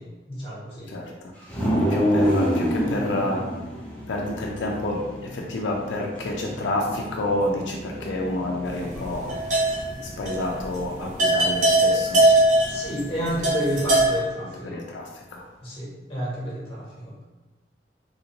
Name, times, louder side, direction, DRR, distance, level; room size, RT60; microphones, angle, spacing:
voice 1, 0.0-0.9 12.7-14.8 15.6-17.1, equal, 30° left, -7 dB, 1.2 m, -30 dB
voice 2, 0.9-1.3 1.7-3.4 4.1-9.4 10.0-12.2 14.6-15.4, left 1 dB, 90° left, 0 dB, 0.4 m, -29 dB
sound 1, 1.5-14.3, equal, 5° left, 0.7 m, -30 dB
sound 2, 8.9-10.0 10.3-10.4 10.8-10.9 11.2-14.2, right 1 dB, 45° right, 0.6 m, -20 dB
3.2 x 2.6 x 2.9 m, 1.1 s
head